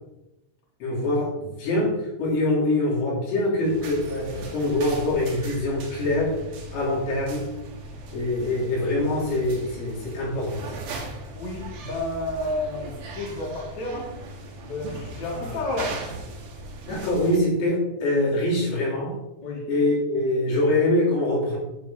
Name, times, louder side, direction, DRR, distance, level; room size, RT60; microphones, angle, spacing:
voice 1, 0.8-6.4 6.7-7.5 8.1-10.8 16.9-19.2 19.7-21.6, left 1 dB, 85° left, -8 dB, 5.6 m, -24 dB
sound 1, 3.6-17.4, right 2 dB, 70° right, 2.0 m, -38 dB
voice 2, 11.3-14.1 14.6-16.0 19.4-19.6 20.5-20.6, left 2 dB, 55° left, -3 dB, 1.2 m, -31 dB
10.5 x 7.4 x 2.8 m, 0.95 s
omnidirectional pair, 5.6 m